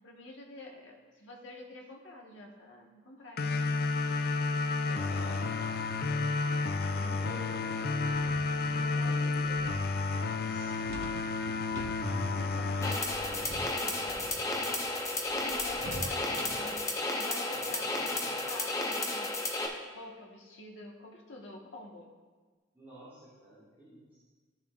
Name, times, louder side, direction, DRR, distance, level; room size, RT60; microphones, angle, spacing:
voice 1, 0.0-3.8 5.1-5.2 8.9-9.1 12.1-14.3 15.2-16.8 17.2-19.4 19.9-22.1, left 2 dB, 80° left, 0 dB, 1.3 m, -47 dB
sound 1, 3.4-14.3, left 3 dB, 50° left, 0.4 m, -31 dB
voice 2, 4.7-5.6 6.1-6.4 6.7-8.1 8.4-10.7 15.9-16.9 17.5-17.7 18.0-18.3 22.7-24.2, right 1 dB, 15° right, -13 dB, 2.7 m, -51 dB
sound 2, 7.9-16.8, right 1 dB, 85° right, 1.1 m, -46 dB
sound 3, 12.8-19.7, left 2 dB, 15° left, 0.7 m, -33 dB
13.5 x 7.0 x 2.4 m, 1.4 s
head